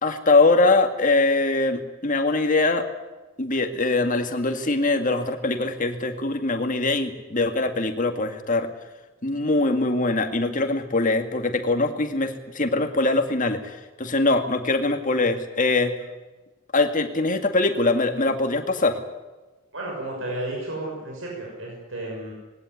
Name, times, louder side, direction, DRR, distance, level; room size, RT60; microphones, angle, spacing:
voice 1, 0.0-2.9 3.4-8.7 9.2-15.9 16.7-19.0, left 2 dB, 40° left, 6 dB, 2.2 m, -22 dB
voice 2, 19.7-22.3, right 1 dB, 75° right, -2 dB, 6.4 m, -32 dB
20.5 x 17.0 x 9.7 m, 1.2 s
head